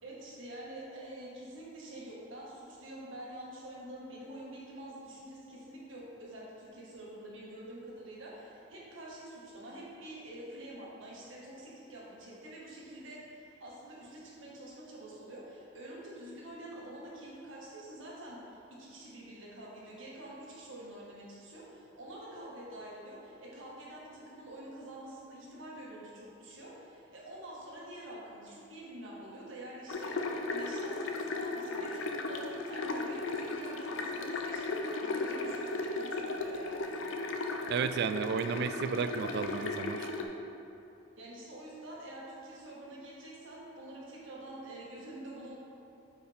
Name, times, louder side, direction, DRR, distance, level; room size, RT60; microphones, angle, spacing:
voice 1, 0.0-36.9 41.2-45.6, right 1 dB, 90° right, -5 dB, 1.7 m, -47 dB
sound 1, 29.9-40.2, left 3 dB, 80° left, 0.6 m, -36 dB
voice 2, 37.7-40.1, right 6 dB, 60° right, 10 dB, 0.3 m, -33 dB
9.2 x 4.6 x 3.5 m, 2.7 s
head